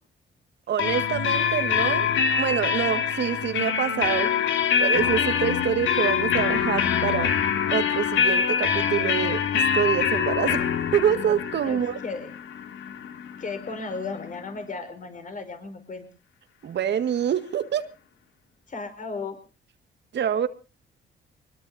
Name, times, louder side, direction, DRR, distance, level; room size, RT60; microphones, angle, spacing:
voice 1, 0.7-2.1 2.4-4.3 4.8-7.3 7.7-10.7 10.9-12.0 16.6-17.9 20.1-20.5, right 9 dB, 60° right, 10 dB, 1.9 m, -26 dB
sound 1, 0.8-14.4, left 7 dB, 75° left, 2.3 m, -25 dB
voice 2, 11.6-12.3 13.4-16.1 18.7-19.4, left 4 dB, 40° left, 8 dB, 5.4 m, -35 dB
23.5 x 21.0 x 2.7 m, 0.34 s
cardioid pair, 90°, 20 cm